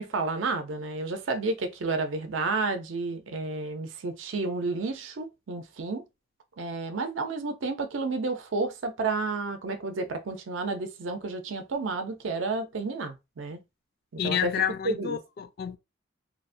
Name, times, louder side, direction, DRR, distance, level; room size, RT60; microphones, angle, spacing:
voice 1, 0.0-6.0 6.6-13.6 14.1-14.5 14.8-15.2, right 3 dB, 70° right, 0.5 m, -31 dB
voice 2, 14.2-15.8, left 9 dB, 50° left, 0.3 m, -29 dB
2.9 x 2.1 x 2.5 m
head